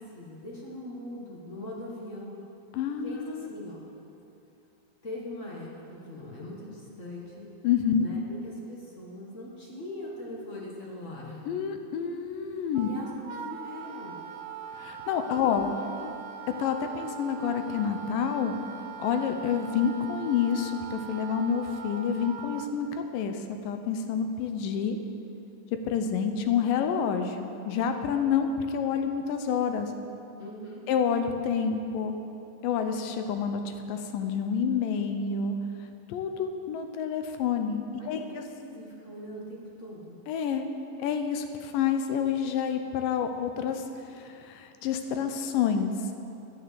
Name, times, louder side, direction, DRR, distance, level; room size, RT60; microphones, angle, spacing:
voice 1, 0.0-2.4 3.0-3.8 5.0-7.5 8.0-11.4 12.8-14.2 15.4-16.2 30.4-30.8 38.0-40.2, left 1 dB, 50° left, -4 dB, 0.9 m, -41 dB
voice 2, 2.7-3.5 7.6-8.1 11.5-12.9 14.8-15.7 16.6-18.6 19.0-25.0 25.9-29.9 30.9-32.1 32.6-35.6 36.1-38.2 40.3-40.7 41.0-43.8 44.1-45.9, left 7 dB, 75° left, 6 dB, 2.3 m, -28 dB
Wind instrument woodwind instrument, 12.7-22.7, right 8 dB, 75° right, 2.2 m, -41 dB
9.9 x 9.9 x 7.8 m, 2.7 s
omnidirectional pair, 4.2 m